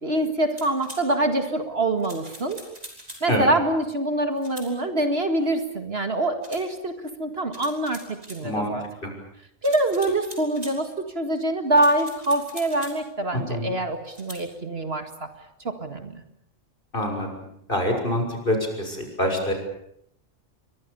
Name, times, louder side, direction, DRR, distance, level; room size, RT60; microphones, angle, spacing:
voice 1, 0.0-2.6 3.2-8.8 9.6-15.3 15.6-16.2, right 1 dB, 50° right, 7 dB, 2.3 m, -25 dB
sound 1, 0.6-1.0 2.0-3.3 4.4-4.7 6.4-6.7 7.5-8.4 9.6-10.8 11.7-13.0 14.1-14.4, right 1 dB, 30° right, 5.6 m, -42 dB
voice 2, 8.4-8.7 9.0-9.1 13.5-13.7 16.9-17.3 17.7-19.5, left 1 dB, 40° left, 3 dB, 6.6 m, -25 dB
29.5 x 24.0 x 7.0 m, 0.71 s
omnidirectional pair, 1.3 m